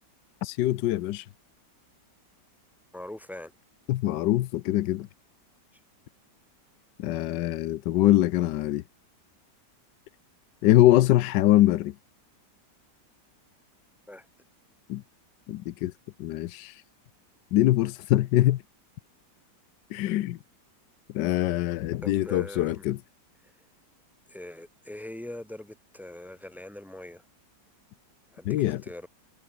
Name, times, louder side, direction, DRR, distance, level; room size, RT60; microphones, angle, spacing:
voice 1, 0.4-1.3 3.9-5.1 7.0-8.8 10.6-11.9 14.9-15.0 15.5-15.9 16.2-16.8 17.5-18.6 19.9-20.4 21.1-23.0 28.5-28.8, left 14 dB, 80° left, 1.3 m, -23 dB
voice 2, 2.9-3.5 5.7-5.8 14.1-14.3 22.0-22.8 23.4-23.6 24.3-27.2 28.3-29.1, left 1 dB, ahead, 2.7 m, -42 dB
omnidirectional pair, 1.9 m